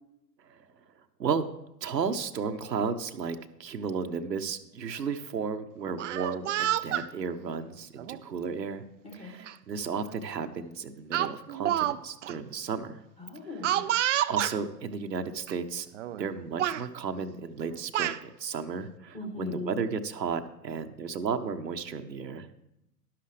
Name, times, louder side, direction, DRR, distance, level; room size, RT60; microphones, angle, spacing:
voice 1, 1.8-8.8 9.1-13.0 14.3-15.9 16.2-22.5, right 5 dB, 80° right, 7 dB, 1.0 m, -33 dB
Speech, 5.9-7.1 8.0-8.2 9.5-9.6 9.9-10.2 11.1-12.0 12.2-12.3 13.6-14.6 15.5-15.6 15.9-16.3 16.6-16.8 17.6-18.2, right 12 dB, 50° right, 0.5 m, -29 dB
voice 2, 9.0-9.4 13.2-13.9 19.1-19.7, left 3 dB, 10° left, 2 dB, 2.0 m, -39 dB
11.5 x 11.5 x 3.2 m, 0.86 s
figure-of-eight pair, 110°, 49 cm